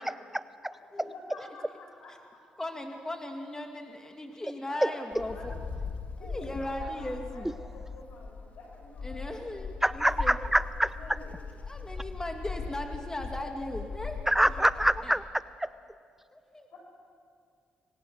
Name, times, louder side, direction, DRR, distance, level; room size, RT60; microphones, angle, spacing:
voice 1, 0.0-0.7 9.8-10.9 14.3-15.7, right 1 dB, 10° right, 15 dB, 0.6 m, -26 dB
voice 2, 0.7-2.4 4.7-5.5 6.2-9.4 10.5-10.7 10.9-11.3 14.7-14.9 16.7-16.8, left 2 dB, 70° left, 0 dB, 7.5 m, -49 dB
voice 3, 2.6-5.5 6.2-7.5 9.0-10.4 11.6-14.5 15.0-15.1 16.3-16.7, left 1 dB, 20° left, 3 dB, 2.6 m, -38 dB
Wind, 5.1-15.1, left 4 dB, 50° left, 2.6 m, -39 dB
25.5 x 20.0 x 6.4 m, 2.2 s
supercardioid pair, 55°, 3 cm